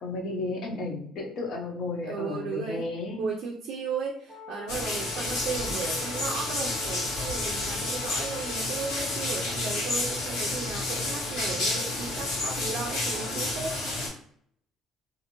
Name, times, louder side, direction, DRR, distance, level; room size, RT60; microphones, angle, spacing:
voice 1, 0.0-3.2, left 2 dB, 50° left, 1 dB, 0.6 m, -33 dB
voice 2, 2.0-2.8 3.2-13.7, right 5 dB, 60° right, -1 dB, 0.4 m, -35 dB
Wind instrument woodwind instrument, 4.3-13.5, left 7 dB, ahead, 0.6 m, -45 dB
sound 1, 4.7-14.1, left 2 dB, 70° left, 1.2 m, -30 dB
2.5 x 2.5 x 2.9 m, 0.63 s
cardioid pair, 160°, 0 cm